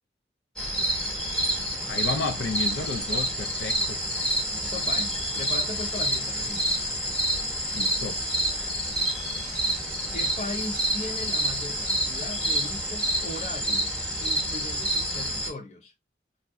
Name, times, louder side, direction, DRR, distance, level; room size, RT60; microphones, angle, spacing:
sound 1, 0.6-15.5, right 1 dB, 5° left, 0.8 m, -28 dB
voice 1, 1.9-4.0 7.7-8.2, left 4 dB, 85° left, 0.4 m, -32 dB
voice 2, 4.5-6.8 10.1-15.9, left 2 dB, 40° left, 0.7 m, -38 dB
2.6 x 2.0 x 3.5 m
head